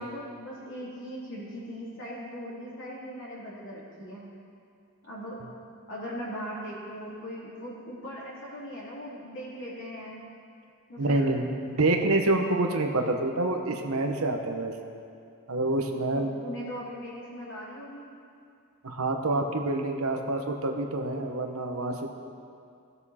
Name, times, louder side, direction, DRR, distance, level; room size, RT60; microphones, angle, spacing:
voice 1, 0.0-4.2 5.0-5.4 5.9-10.2 10.9-11.3 16.1-18.1, equal, 60° left, -6 dB, 3.3 m, -39 dB
voice 2, 11.0-14.7 15.5-16.3 18.8-22.1, right 2 dB, 75° right, 4 dB, 1.0 m, -27 dB
17.5 x 7.0 x 4.3 m, 2.4 s
head